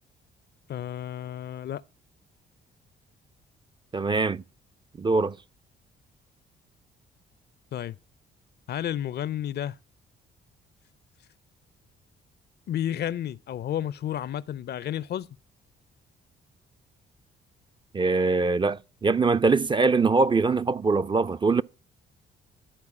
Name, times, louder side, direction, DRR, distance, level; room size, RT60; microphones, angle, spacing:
voice 1, 0.7-1.8 7.7-8.0 8.7-9.8 12.7-15.3, left 10 dB, 55° left, 0.5 m, -31 dB
voice 2, 3.9-4.4 5.0-5.3 17.9-21.6, right 4 dB, 25° right, 0.5 m, -23 dB
13.0 x 4.7 x 8.4 m
cardioid pair, 90°, 20 cm